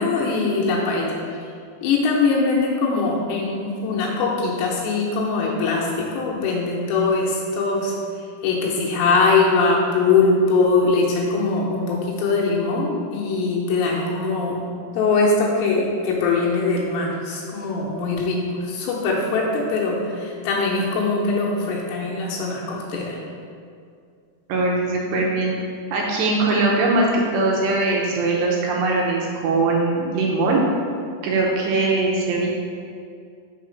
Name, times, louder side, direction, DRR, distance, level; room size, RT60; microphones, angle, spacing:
voice 1, 0.0-1.5 1.8-8.0 8.4-14.6 14.9-23.2, left 3 dB, 80° left, -3 dB, 2.9 m, -22 dB
voice 2, 24.5-25.5 25.9-30.6 31.2-32.5, right 3 dB, 80° right, -2 dB, 2.7 m, -21 dB
6.5 x 4.1 x 5.2 m, 2.3 s
omnidirectional pair, 5.3 m